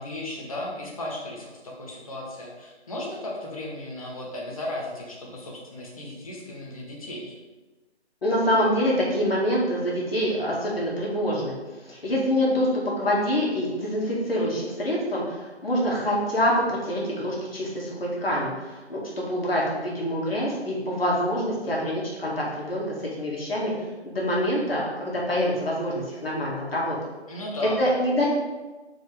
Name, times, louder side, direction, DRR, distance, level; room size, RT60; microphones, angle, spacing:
voice 1, 0.0-7.3 27.3-27.9, left 1 dB, 30° left, -3 dB, 1.3 m, -35 dB
voice 2, 8.2-11.5 11.9-12.7 13.0-18.5 18.9-22.8 23.2-23.7 24.0-27.0 27.8-28.3, equal, 60° left, -5 dB, 2.1 m, -25 dB
5.1 x 4.6 x 5.0 m, 1.2 s
figure-of-eight pair, 165°, 34 cm